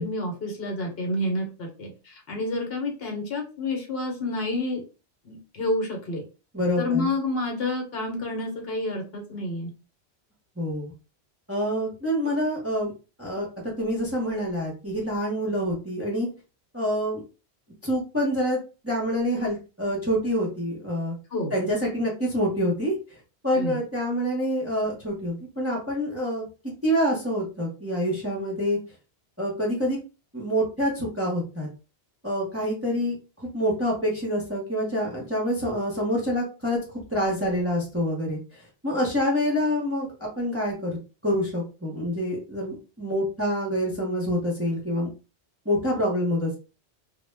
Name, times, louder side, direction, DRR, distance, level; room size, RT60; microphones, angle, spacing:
voice 1, 0.0-4.8 5.2-6.2 6.8-9.7 21.3-21.5 23.5-23.8, left 2 dB, 65° left, 2 dB, 0.9 m, -29 dB
voice 2, 6.5-7.1 10.6-10.9 11.5-12.9 13.2-13.5 13.8-16.3 16.7-17.2 17.8-18.6 18.8-21.1 21.5-22.9 23.4-26.4 26.8-28.8 29.4-30.0 30.3-31.7 32.2-36.8 37.1-38.4 38.8-45.1 45.7-46.6, equal, 15° right, -4 dB, 0.6 m, -26 dB
2.1 x 2.0 x 3.2 m, 0.33 s
omnidirectional pair, 1.1 m